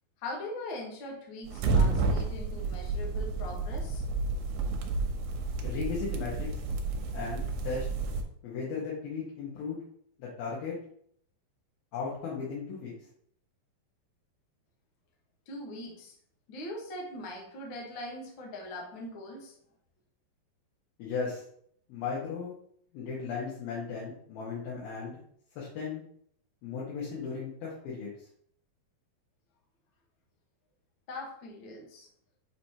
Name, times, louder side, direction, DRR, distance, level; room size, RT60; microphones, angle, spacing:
voice 1, 0.2-4.0 15.5-16.1 16.5-19.5 31.1-32.1, left 1 dB, 60° left, 0 dB, 1.2 m, -41 dB
sound 1, 1.5-8.2, right 3 dB, 75° right, 2.3 m, -30 dB
voice 2, 5.6-6.6 7.1-7.8 8.4-9.8 10.2-10.8 11.9-12.9 21.0-21.4 21.9-22.5 22.9-25.2 25.6-26.0 26.6-28.1, left 5 dB, 80° left, -6 dB, 3.3 m, -36 dB
7.6 x 5.3 x 2.9 m, 0.65 s
omnidirectional pair, 4.2 m